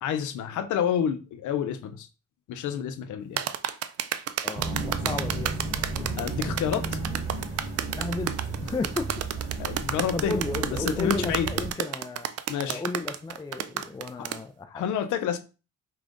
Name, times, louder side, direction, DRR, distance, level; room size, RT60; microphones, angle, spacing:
voice 1, 0.0-2.1 2.5-3.4 6.2-6.9 9.6-10.4 10.8-11.5 12.5-12.8 14.7-15.4, left 8 dB, 75° left, 0.6 m, -28 dB
sound 1, 3.4-14.4, right 10 dB, 55° right, 0.4 m, -31 dB
voice 2, 4.4-5.5 5.9-6.5 8.0-8.3 8.6-9.1 10.1-12.3 12.7-14.8, left 3 dB, 15° left, 0.4 m, -34 dB
sound 2, 4.5-11.7, right 3 dB, 20° right, 1.7 m, -33 dB
5.2 x 2.5 x 3.7 m
cardioid pair, 90°, 30 cm